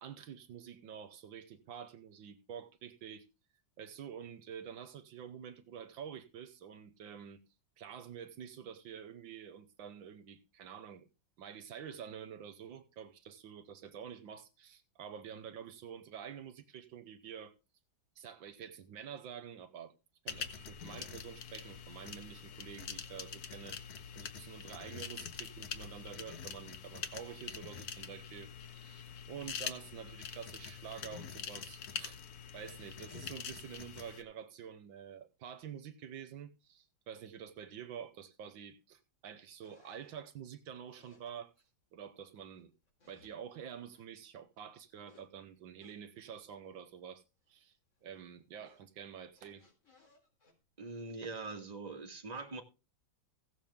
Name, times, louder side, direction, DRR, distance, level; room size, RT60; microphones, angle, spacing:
voice 1, 0.0-3.2 3.8-7.4 7.8-11.1 11.4-17.5 18.2-19.9 20.2-23.8 24.1-32.2 32.5-41.5 41.9-42.7 43.1-47.8 48.0-49.6, right 8 dB, 80° right, 1.6 m, -48 dB
sound 1, 20.3-34.2, left 7 dB, 55° left, 1.3 m, -45 dB
sound 2, 39.6-41.7 42.4-43.3 43.6-44.0 45.0-45.2 45.8-46.3 46.9-47.0 47.2-47.7 48.0-50.6, left 3 dB, 35° left, 4.5 m, -66 dB
voice 2, 50.8-52.6, right 3 dB, 20° right, 1.8 m, -42 dB
16.0 x 7.3 x 3.6 m
omnidirectional pair, 2.1 m